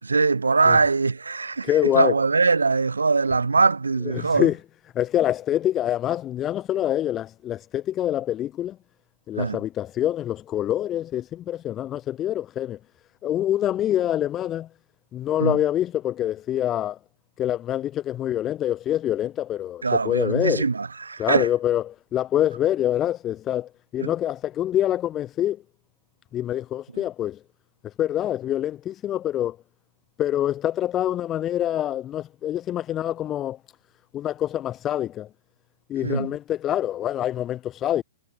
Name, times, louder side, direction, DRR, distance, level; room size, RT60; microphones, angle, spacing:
voice 1, 0.0-4.5 9.4-9.6 15.4-15.6 19.8-21.5 24.0-24.1 36.0-36.3, right 4 dB, 85° right, 7.3 m, -22 dB
voice 2, 1.6-2.1 4.1-4.6 4.9-8.8 9.3-12.8 13.2-14.7 15.1-17.0 17.4-20.6 21.2-25.6 26.3-27.4 28.0-29.6 30.2-33.6 34.1-35.3 35.9-38.0, left 12 dB, 25° left, 6.7 m, -25 dB
figure-of-eight pair, 115°, 0 cm